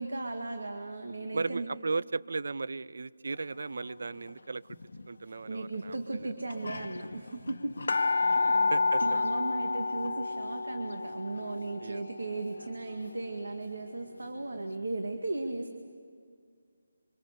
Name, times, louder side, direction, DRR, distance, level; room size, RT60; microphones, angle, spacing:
voice 1, 0.0-1.7 5.4-7.8 8.1-8.6 9.0-15.8, right 2 dB, 85° right, 4 dB, 2.0 m, -36 dB
voice 2, 1.3-4.6 5.1-6.3 8.3-8.4 8.7-9.2 11.8-12.0, right 3 dB, 55° right, 19 dB, 0.5 m, -36 dB
sound 1, 4.7-5.1 5.9-6.0 6.2-6.3 6.5-14.1 14.6-14.7, left 3 dB, 65° left, 1.0 m, -31 dB
26.5 x 25.0 x 6.8 m, 2.2 s
figure-of-eight pair, 175°, 0 cm